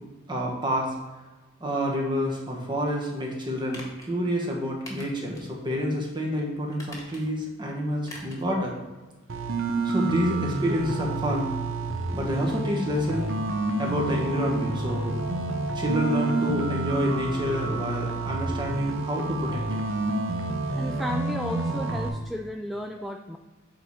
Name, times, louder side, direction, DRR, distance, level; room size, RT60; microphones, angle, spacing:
voice 1, 0.3-0.9 1.6-8.7 9.8-11.5 12.1-13.3 13.8-15.2 15.7-19.6, equal, 25° right, -1 dB, 1.4 m, -28 dB
sound 1, 3.7-4.1 4.9-5.5 5.9-6.0 6.7-7.5 8.0-8.5 8.8-8.9, left 1 dB, 15° left, 1.6 m, -44 dB
sound 2, 9.3-22.1, right 2 dB, 65° right, 0.8 m, -29 dB
voice 2, 20.8-23.4, left 1 dB, ahead, 2 dB, 0.3 m, -34 dB
7.9 x 4.2 x 4.8 m, 1.2 s
head